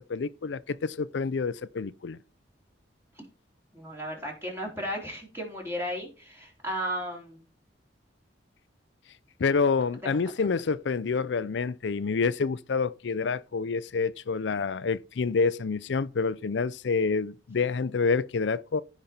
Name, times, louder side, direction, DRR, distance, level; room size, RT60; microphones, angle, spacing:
voice 1, 0.0-2.2 9.4-18.8, left 4 dB, 70° left, 0.5 m, -28 dB
voice 2, 3.7-7.4 10.0-10.2, equal, 15° right, 3.6 m, -34 dB
15.0 x 5.3 x 4.3 m
head